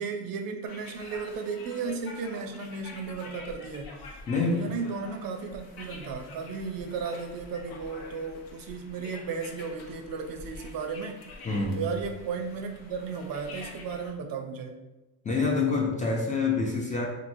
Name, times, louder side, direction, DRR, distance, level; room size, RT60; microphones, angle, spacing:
voice 1, 0.0-11.2 11.7-14.7, right 5 dB, 55° right, 5 dB, 0.5 m, -35 dB
sound 1, 0.6-14.1, left 3 dB, 60° left, 0.7 m, -47 dB
voice 2, 4.3-4.7 11.4-11.8 15.2-17.1, left 4 dB, 20° left, -1 dB, 0.4 m, -26 dB
2.9 x 2.6 x 2.6 m, 1.1 s
cardioid pair, 95°, 42 cm